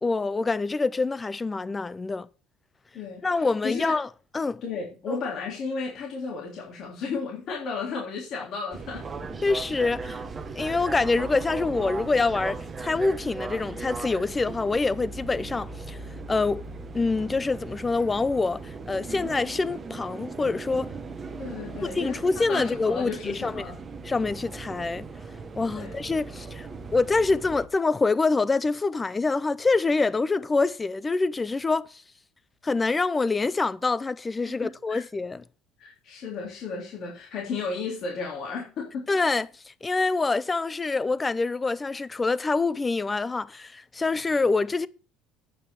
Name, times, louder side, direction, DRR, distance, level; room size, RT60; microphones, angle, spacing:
voice 1, 0.0-2.3 3.2-4.1 4.3-4.6 5.1-5.2 9.4-10.2 10.5-16.0 16.3-16.6 16.9-21.0 21.8-23.7 24.0-25.1 25.6-32.0 32.6-35.4 39.1-44.9, left 3 dB, 20° left, 0.6 m, -26 dB
voice 2, 2.9-3.9 4.6-9.1 21.4-22.2 22.5-23.8 25.7-25.9 34.4-35.0 35.8-39.1, left 4 dB, 55° left, 3.4 m, -34 dB
sound 1, 8.7-27.7, right 4 dB, 30° right, 1.4 m, -38 dB
9.3 x 5.8 x 6.9 m
supercardioid pair, 100°, 0 cm